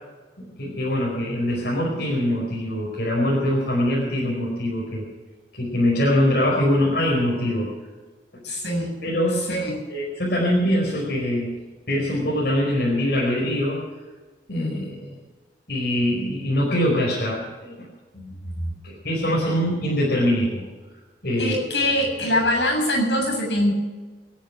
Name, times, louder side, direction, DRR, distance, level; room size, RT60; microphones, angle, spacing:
voice 1, 0.6-5.0 5.5-7.7 9.0-9.4 9.9-11.5 11.9-13.9 14.5-15.2 15.7-17.9 18.8-20.6 21.2-21.6, left 1 dB, 60° left, -4 dB, 5.0 m, -23 dB
voice 2, 8.4-9.0 9.5-9.8 14.5-14.8 18.1-18.7 21.4-23.7, left 1 dB, 80° left, 4 dB, 7.1 m, -24 dB
26.5 x 9.0 x 6.1 m, 1.3 s
head